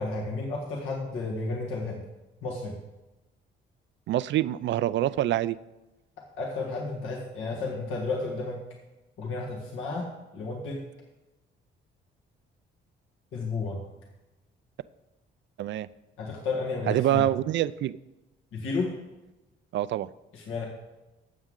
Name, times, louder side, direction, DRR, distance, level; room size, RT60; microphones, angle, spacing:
voice 1, 0.0-2.1 2.4-2.8 6.2-8.6 9.2-10.8 13.3-13.8 16.2-17.3 18.5-18.9 20.3-20.6, left 3 dB, 80° left, -2 dB, 1.9 m, -32 dB
voice 2, 4.1-5.6 15.6-15.9 16.9-18.0 19.7-20.1, right 13 dB, 65° right, 16 dB, 0.4 m, -26 dB
12.5 x 8.0 x 3.7 m, 1.0 s
cardioid pair, 90°, 20 cm